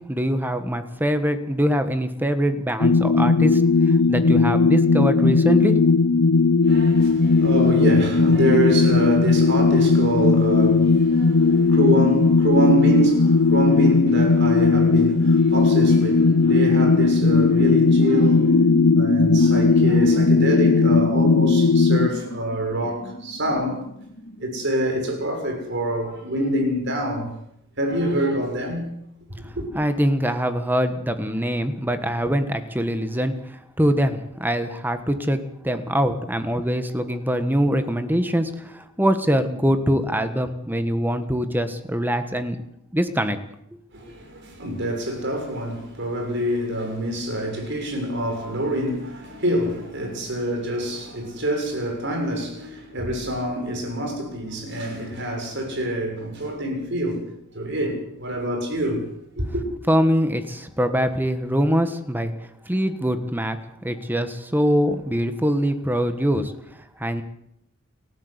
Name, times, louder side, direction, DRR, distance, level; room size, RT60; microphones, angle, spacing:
voice 1, 0.1-5.7 29.7-42.6 42.9-43.4 59.9-62.3 62.6-63.6 63.8-66.5 67.0-67.2, equal, 10° right, 1.5 m, -23 dB
sound 1, 2.8-22.1, left 4 dB, 70° left, 0.7 m, -17 dB
voice 2, 6.6-23.8 24.4-27.3 27.8-28.9 29.6-29.7 43.9-59.0 59.4-59.6, right 1 dB, 60° right, 6.9 m, -26 dB
sound 2, 13.3-25.0, left 1 dB, 45° left, 1.5 m, -29 dB
30.0 x 12.5 x 8.2 m
head